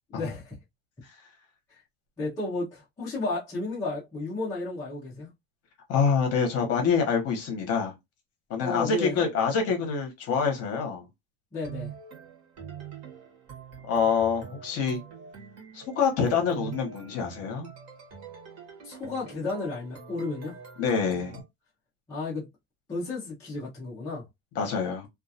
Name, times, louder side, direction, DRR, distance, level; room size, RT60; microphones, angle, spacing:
voice 1, 0.1-0.6 1.7-1.8 2.2-5.3 8.6-9.3 11.5-11.9 18.8-20.5 22.1-22.5 22.9-24.2, left 3 dB, 10° left, 0.3 m, -33 dB
voice 2, 5.9-7.9 8.5-11.0 13.9-15.0 15.7-17.7 20.8-21.4 24.5-25.1, left 6 dB, 35° left, 0.8 m, -26 dB
sound 1, 11.6-21.4, right 8 dB, 35° right, 1.0 m, -44 dB
2.4 x 2.2 x 2.6 m
cardioid pair, 175°, 44 cm